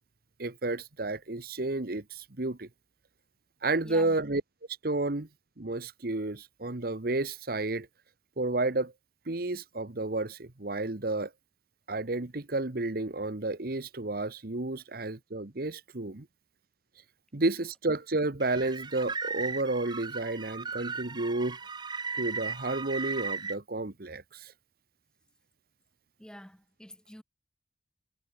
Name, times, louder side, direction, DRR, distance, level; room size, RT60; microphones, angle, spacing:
voice 1, 0.4-2.7 3.6-4.4 4.8-5.3 5.6-7.9 8.4-8.9 9.3-11.3 11.9-16.3 17.3-21.6 22.2-24.5, right 2 dB, 55° right, 1.2 m, -31 dB
voice 2, 3.8-4.2 26.2-27.2, equal, 5° left, 2.0 m, -47 dB
sound 1, 18.4-23.6, right 4 dB, 25° right, 1.3 m, -36 dB
head